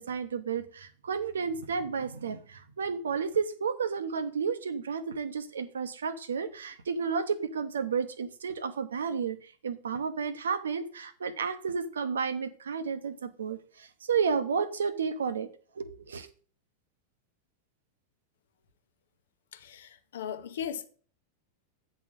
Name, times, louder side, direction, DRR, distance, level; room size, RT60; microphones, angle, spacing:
voice 1, 0.0-15.5 15.8-16.3, right 6 dB, 70° right, 0.8 m, -32 dB
voice 2, 19.5-20.9, left 8 dB, 60° left, 1.0 m, -37 dB
9.2 x 4.2 x 6.5 m
figure-of-eight pair, 90°, 0 cm